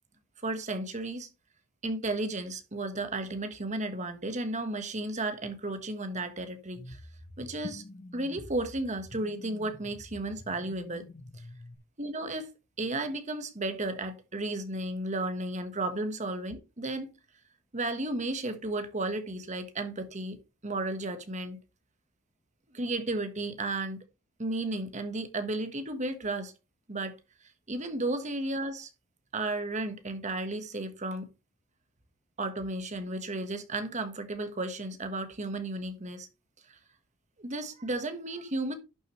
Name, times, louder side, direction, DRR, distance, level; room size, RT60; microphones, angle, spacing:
voice 1, 0.4-1.3 1.8-7.0 7.4-7.8 8.1-11.1 12.0-12.5 12.8-17.1 17.7-20.4 20.6-21.6 22.7-24.0 24.4-26.5 26.9-27.1 27.7-28.9 29.3-31.3 32.4-36.3 37.4-38.8, right 2 dB, 35° right, 1.3 m, -33 dB
sound 1, 6.8-11.8, left 1 dB, 40° left, 1.1 m, -47 dB
11.5 x 6.6 x 3.2 m
head